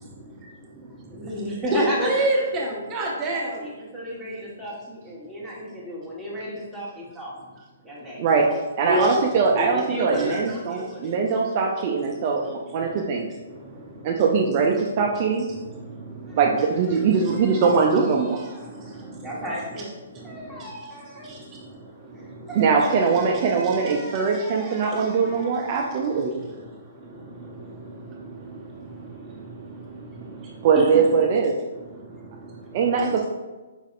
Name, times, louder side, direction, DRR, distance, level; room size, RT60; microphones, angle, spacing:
voice 1, 0.0-1.3 1.7-3.6 8.9-9.2 10.1-10.3 12.8-13.1 13.5-14.2 15.5-16.4 18.6-19.3 20.1-20.9 21.2-22.9 26.3-30.9 31.8-32.8, right 1 dB, 25° right, -2 dB, 0.9 m, -31 dB
voice 2, 1.1-2.5 2.9-7.3 7.8-8.2 9.5-11.1 16.3-19.9 20.2-21.3 22.1-26.6, equal, ahead, -8 dB, 1.3 m, -35 dB
voice 3, 8.8-13.3 14.0-15.5 16.4-18.4 22.5-26.3 30.6-31.5 32.7-33.3, right 5 dB, 40° right, -1 dB, 0.5 m, -21 dB
5.1 x 4.0 x 2.5 m, 1.2 s
hypercardioid pair, 130°, 0 cm